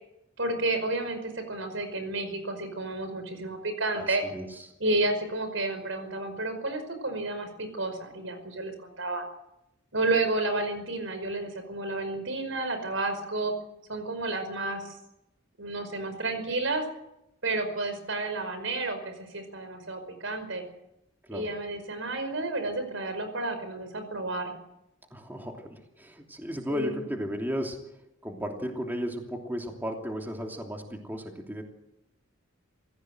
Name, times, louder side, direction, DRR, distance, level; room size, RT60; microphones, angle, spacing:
voice 1, 0.4-4.2 4.8-9.2 9.9-13.5 13.9-14.9 15.6-16.8 17.4-20.6 21.3-24.5 26.7-27.1, right 2 dB, 80° right, 8 dB, 5.3 m, -31 dB
voice 2, 3.9-4.6 21.3-21.5 25.1-27.8 28.2-31.6, equal, 10° right, 2 dB, 2.9 m, -35 dB
27.0 x 16.5 x 7.9 m, 0.85 s
head